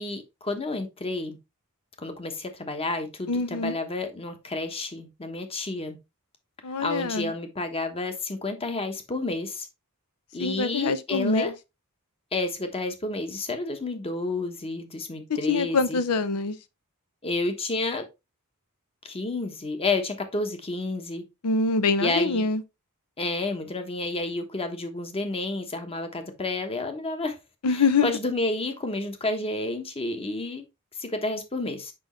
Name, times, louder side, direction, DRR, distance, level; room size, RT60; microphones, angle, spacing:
voice 1, 0.0-1.4 2.0-6.0 6.8-9.7 10.3-11.5 12.3-16.0 17.2-18.1 19.0-21.2 22.0-22.5 23.2-27.3 27.7-30.6 31.0-31.9, left 2 dB, 25° left, 1.1 m, -30 dB
voice 2, 3.3-3.8 6.6-7.3 10.4-11.5 15.3-16.6 21.4-22.6 27.6-28.1, left 4 dB, 85° left, 0.7 m, -24 dB
6.1 x 5.2 x 3.1 m
head